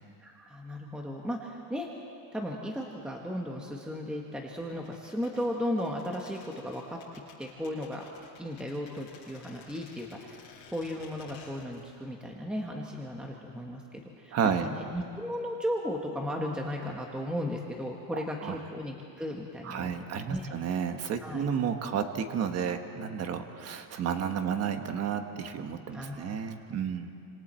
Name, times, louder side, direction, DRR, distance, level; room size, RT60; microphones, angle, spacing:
voice 1, 0.2-1.9 2.3-8.0 8.4-10.4 10.7-20.5 21.2-21.4 25.9-26.4, equal, ahead, 0 dB, 1.1 m, -35 dB
sound 1, 4.8-12.0 12.3-12.4, left 5 dB, 50° left, 6.6 m, -54 dB
voice 2, 14.3-14.7 18.1-18.6 19.6-27.1, right 7 dB, 35° right, 7 dB, 1.2 m, -32 dB
27.5 x 26.5 x 4.4 m, 2.6 s
cardioid pair, 165°, 45 cm